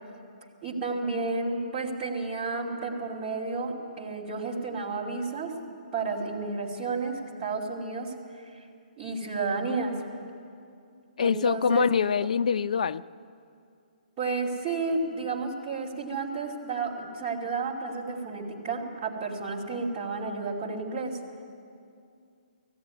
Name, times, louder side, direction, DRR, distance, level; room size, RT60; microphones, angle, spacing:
voice 1, 0.6-5.5 5.9-8.1 8.5-8.6 9.0-10.0 11.2-11.8 14.2-21.2, right 4 dB, 15° right, -7 dB, 2.6 m, -31 dB
voice 2, 11.2-13.0, left 6 dB, 50° left, 11 dB, 0.4 m, -24 dB
18.5 x 15.0 x 9.7 m, 2.4 s
hypercardioid pair, 180°, 5 cm